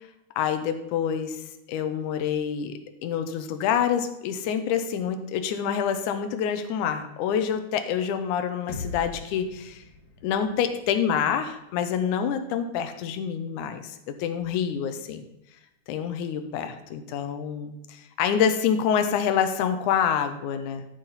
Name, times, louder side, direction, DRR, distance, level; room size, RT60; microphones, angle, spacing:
voice 1, 0.4-1.4 1.7-9.8 10.2-15.2 15.9-20.9, left 8 dB, 80° left, 8 dB, 2.2 m, -27 dB
sound 1, 8.7-12.6, left 2 dB, 55° left, 1.5 m, -42 dB
13.0 x 4.9 x 5.6 m, 0.88 s
omnidirectional pair, 3.7 m